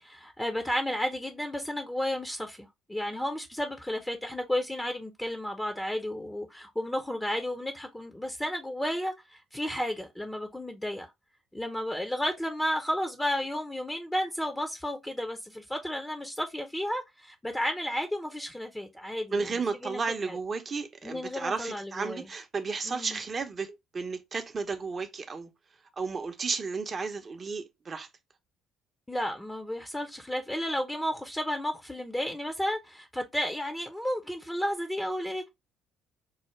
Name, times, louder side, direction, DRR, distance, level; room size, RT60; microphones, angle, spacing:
voice 1, 0.0-11.1 11.5-19.3 19.8-20.4 21.0-22.3 22.9-23.2 29.1-35.5, equal, 10° left, 0.7 m, -32 dB
voice 2, 19.3-25.5 26.0-28.1, right 4 dB, 35° right, 0.7 m, -33 dB
4.6 x 2.1 x 3.1 m
hypercardioid pair, 55°, 0 cm